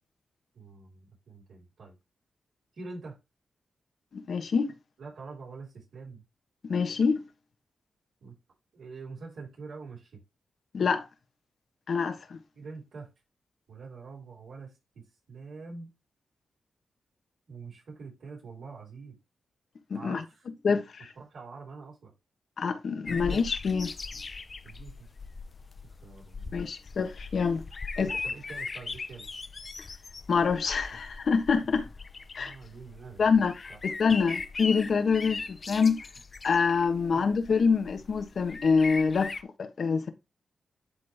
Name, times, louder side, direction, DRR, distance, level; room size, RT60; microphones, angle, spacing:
voice 1, 0.5-1.9 2.8-3.2 5.0-6.2 8.2-8.4 8.7-10.2 12.5-13.1 13.7-15.9 17.5-19.2 19.9-20.5 21.2-22.1 23.1-23.4 24.6-24.9 26.0-26.5 27.9-29.3 32.4-33.4 33.7-33.8 37.1-37.3, right 4 dB, 80° right, 5.8 m, -45 dB
voice 2, 4.1-4.7 6.7-7.2 10.7-11.0 11.9-12.4 19.9-20.2 20.6-21.1 22.6-23.9 26.5-27.6 28.0-28.1 30.3-31.9 32.3-32.5 33.2-36.0 36.4-39.3 39.6-40.1, left 5 dB, 65° left, 1.3 m, -26 dB
sound 1, 23.1-39.4, left 4 dB, 45° left, 0.6 m, -40 dB
11.5 x 4.0 x 3.5 m
cardioid pair, 70°, 0 cm